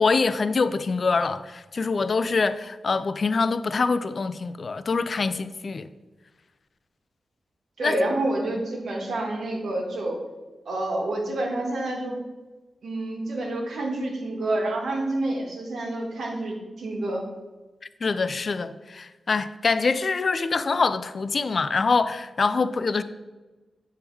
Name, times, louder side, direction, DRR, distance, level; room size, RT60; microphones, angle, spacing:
voice 1, 0.0-5.9 7.8-8.1 18.0-23.0, left 4 dB, 40° left, 0.3 m, -25 dB
voice 2, 7.8-10.2 10.6-12.2 12.8-17.2, right 1 dB, 75° right, 1.4 m, -28 dB
8.6 x 3.6 x 4.5 m
wide cardioid pair, 140°, 0 cm